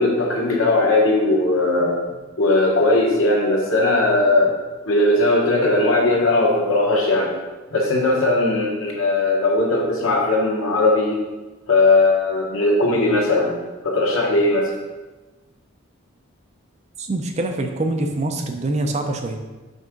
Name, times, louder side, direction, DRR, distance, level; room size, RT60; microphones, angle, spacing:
voice 1, 0.0-2.0 2.4-4.5 4.9-7.3 7.7-11.2 11.7-13.6 13.8-14.7, left 2 dB, 85° left, -2 dB, 1.3 m, -18 dB
voice 2, 17.0-19.4, right 2 dB, 35° right, 4 dB, 0.5 m, -24 dB
5.3 x 3.6 x 5.1 m, 1.2 s
head